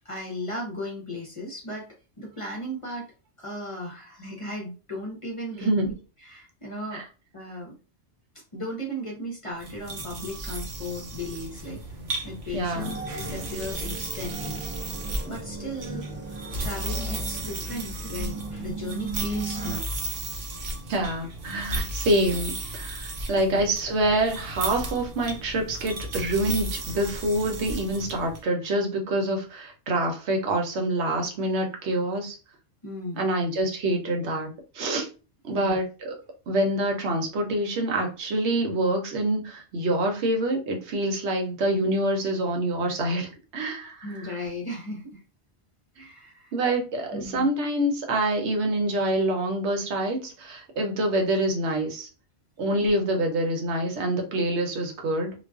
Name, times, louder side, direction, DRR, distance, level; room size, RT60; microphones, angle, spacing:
voice 1, 0.0-1.9 2.2-3.1 3.4-5.9 6.2-7.0 7.3-7.8 8.5-11.8 12.2-14.6 15.3-16.0 16.6-19.9 23.3-23.6 32.8-33.3 35.5-35.8 44.0-45.2 46.0-46.5 47.1-47.5 52.8-52.9, left 1 dB, 40° left, -1 dB, 0.5 m, -36 dB
voice 2, 5.6-5.9 6.9-7.0 12.5-12.9 20.9-32.4 33.1-35.1 35.4-36.1 36.5-44.4 46.0-46.1 46.5-52.1 52.6-55.3, right 1 dB, 90° right, 3 dB, 1.0 m, -26 dB
sound 1, 9.6-28.4, right 1 dB, 60° right, 0.7 m, -35 dB
sound 2, 12.7-19.8, right 4 dB, 20° right, 0.3 m, -37 dB
2.4 x 2.2 x 2.3 m, 0.34 s
omnidirectional pair, 1.1 m